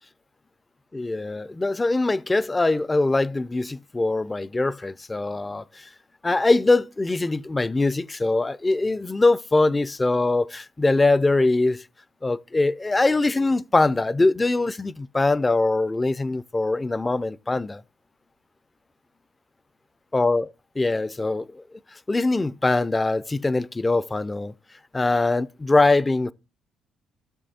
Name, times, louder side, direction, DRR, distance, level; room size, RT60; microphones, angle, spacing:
voice 1, 0.9-5.9 6.2-11.8 12.2-17.8 20.1-21.6 22.1-24.5 24.9-26.3, left 2 dB, 25° left, 0.4 m, -22 dB
17.0 x 6.4 x 2.8 m
supercardioid pair, 55°, 0 cm